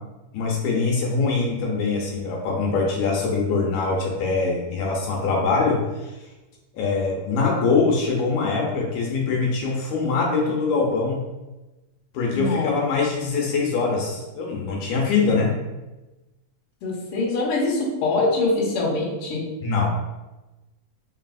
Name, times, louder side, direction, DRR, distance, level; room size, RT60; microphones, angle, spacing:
voice 1, 0.3-6.1 6.7-11.2 12.1-15.5 19.6-19.9, left 4 dB, 80° left, -2 dB, 2.0 m, -23 dB
voice 2, 12.3-12.7 16.8-19.4, left 2 dB, 65° left, -4 dB, 1.5 m, -23 dB
4.0 x 4.0 x 2.4 m, 1.1 s
omnidirectional pair, 3.6 m